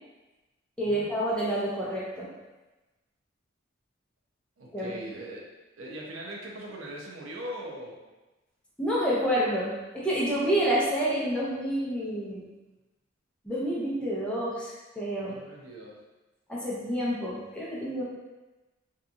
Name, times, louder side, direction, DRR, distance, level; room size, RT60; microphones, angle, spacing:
voice 1, 0.8-2.3 4.7-5.0 8.8-12.5 13.4-15.3 16.5-18.0, equal, 5° left, -7 dB, 0.6 m, -28 dB
voice 2, 4.6-5.5 5.8-8.0 15.3-16.0, right 1 dB, 85° right, -2 dB, 0.6 m, -40 dB
2.8 x 2.5 x 2.3 m, 1.1 s
head